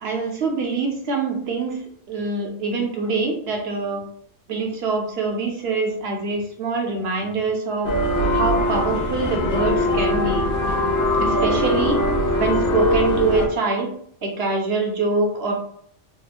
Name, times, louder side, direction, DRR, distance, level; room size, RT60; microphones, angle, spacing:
voice 1, 0.0-1.8 2.1-4.0 4.5-7.9 8.3-10.5 11.2-12.0 12.4-13.9 14.2-15.5, right 3 dB, 60° right, 1 dB, 0.9 m, -24 dB
sound 1, 7.8-13.5, left 1 dB, 65° left, 0.9 m, -21 dB
2.9 x 2.0 x 4.1 m, 0.64 s
omnidirectional pair, 1.3 m